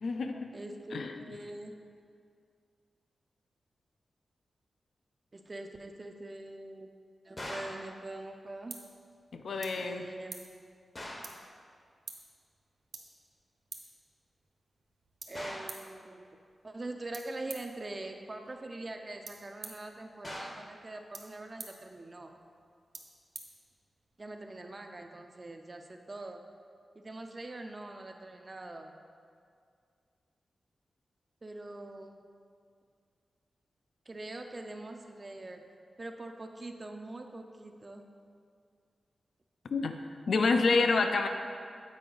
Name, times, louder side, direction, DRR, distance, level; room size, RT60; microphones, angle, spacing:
voice 1, 0.0-0.5 0.9-1.1 9.3-10.0 39.7-39.9 40.3-41.3, left 4 dB, 65° left, 6 dB, 0.4 m, -28 dB
voice 2, 0.5-1.7 5.3-6.9 7.3-8.8 9.8-10.4 15.3-16.3 16.6-22.3 24.2-26.4 27.0-28.9 31.4-32.3 34.1-35.6 36.0-38.0, right 2 dB, 25° right, 4 dB, 0.4 m, -43 dB
sound 1, 7.4-7.9 11.0-11.4 15.4-15.8 20.2-20.7, left 1 dB, 30° left, 0.7 m, -42 dB
sound 2, 7.9-24.2, right 4 dB, 65° right, 0.7 m, -52 dB
8.3 x 4.7 x 3.8 m, 2.2 s
wide cardioid pair, 150°, 0 cm